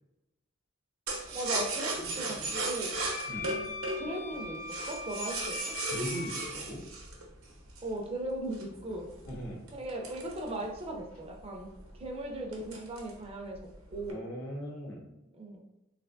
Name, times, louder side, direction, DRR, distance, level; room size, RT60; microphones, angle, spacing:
sound 1, 1.1-8.0 8.5-11.0 11.3-11.4 11.7-12.1 12.5-13.2 13.5-14.1, right 2 dB, 70° right, 0.8 m, -36 dB
voice 1, 1.3-3.0 3.5-4.6 4.9-5.7 7.8-9.1 9.7-11.7 12.0-13.6 13.9-14.2 15.3-15.6, right 1 dB, 30° right, 1 dB, 0.5 m, -38 dB
Wind instrument woodwind instrument, 3.1-6.5, left 4 dB, 35° left, 0.5 m, -41 dB
voice 2, 5.8-6.8 9.3-9.6 14.1-15.1, equal, 85° left, -2 dB, 1.0 m, -39 dB
3.3 x 2.7 x 2.6 m, 0.95 s
head